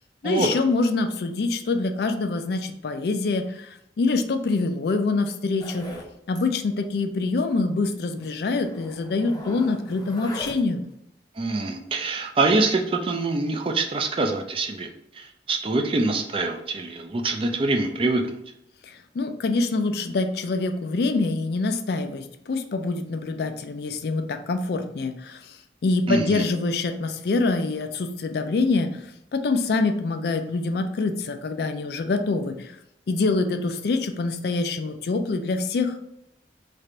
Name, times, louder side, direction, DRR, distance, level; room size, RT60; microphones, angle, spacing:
voice 1, 0.2-5.9 6.3-10.8 18.8-32.8 33.1-36.0, left 3 dB, 60° left, 7 dB, 0.4 m, -25 dB
Zipper (clothing), 5.6-6.1 6.3-6.5 6.8-6.9 7.3-7.4 8.2-8.3 8.6-10.8, left 1 dB, 25° left, 0.8 m, -39 dB
voice 2, 11.4-14.9 15.1-18.2 26.1-26.4, right 3 dB, 30° right, 4 dB, 0.4 m, -24 dB
3.3 x 2.5 x 4.3 m, 0.79 s
head